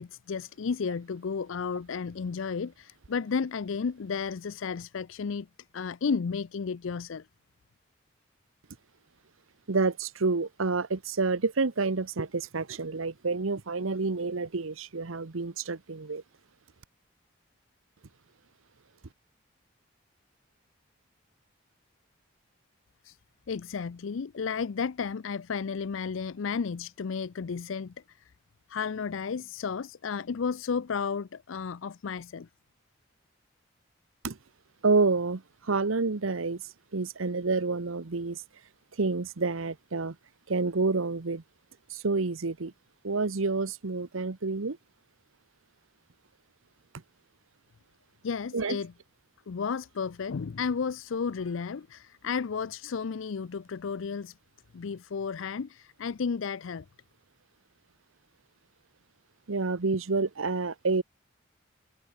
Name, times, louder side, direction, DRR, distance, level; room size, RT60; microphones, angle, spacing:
voice 1, 0.0-5.5 5.7-7.3 23.0-23.2 23.5-28.3 28.7-32.5 48.2-48.9 49.5-54.3 54.7-56.9, left 5 dB, 70° left, 0.5 m, -33 dB
voice 2, 9.7-16.2 34.2-34.4 34.8-36.6 36.9-38.4 39.0-40.2 40.5-41.4 41.9-42.7 43.0-44.8 48.5-48.8 59.5-61.0, right 3 dB, 80° right, 1.0 m, -28 dB
head